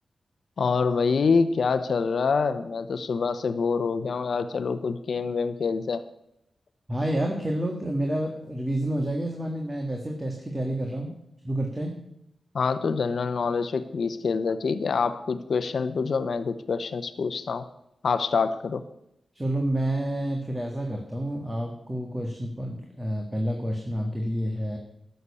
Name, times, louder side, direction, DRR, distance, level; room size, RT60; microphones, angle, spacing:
voice 1, 0.6-6.0 12.5-17.7 18.0-18.8, left 5 dB, 70° left, 10 dB, 0.8 m, -26 dB
voice 2, 6.9-11.1 11.4-12.0 19.3-24.8, right 1 dB, 20° right, 1 dB, 1.7 m, -29 dB
12.5 x 6.8 x 8.4 m, 0.81 s
wide cardioid pair, 85°, 0 cm